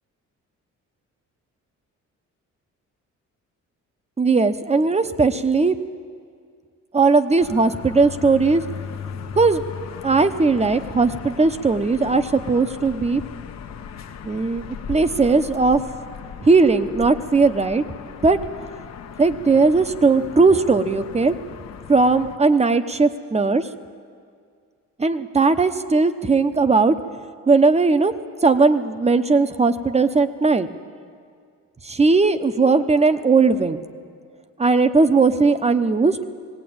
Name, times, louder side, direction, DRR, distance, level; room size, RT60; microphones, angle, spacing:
voice 1, 4.2-5.8 6.9-8.7 9.3-9.6 10.0-13.2 14.2-15.8 16.4-17.8 18.2-18.4 19.2-21.3 21.9-23.7 25.0-26.9 27.5-28.1 28.4-30.7 31.8-33.8 34.6-36.2, right 4 dB, 20° right, 11 dB, 0.9 m, -18 dB
sound 1, 7.4-22.4, left 7 dB, 60° left, 1.0 m, -37 dB
18.5 x 17.5 x 8.8 m, 2.1 s
cardioid pair, 90°, 30 cm